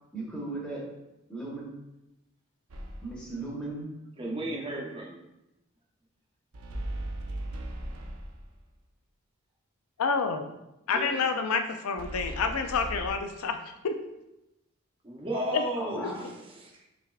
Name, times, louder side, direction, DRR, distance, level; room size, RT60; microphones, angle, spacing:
voice 1, 0.1-0.9 1.3-1.7 3.0-3.9 4.2-4.8 15.8-16.2, right 2 dB, 5° left, -5 dB, 1.0 m, -37 dB
sound 1, 2.7-3.3 6.5-8.6 12.0-13.1, right 1 dB, 85° right, 0.6 m, -37 dB
voice 2, 4.2-5.2 10.9-11.1 15.0-16.9, right 1 dB, 25° right, -1 dB, 0.7 m, -35 dB
voice 3, 10.0-10.5 10.9-14.0 15.5-15.6 16.0-16.1, left 5 dB, 85° left, 7 dB, 0.5 m, -28 dB
5.9 x 3.4 x 2.3 m, 0.92 s
head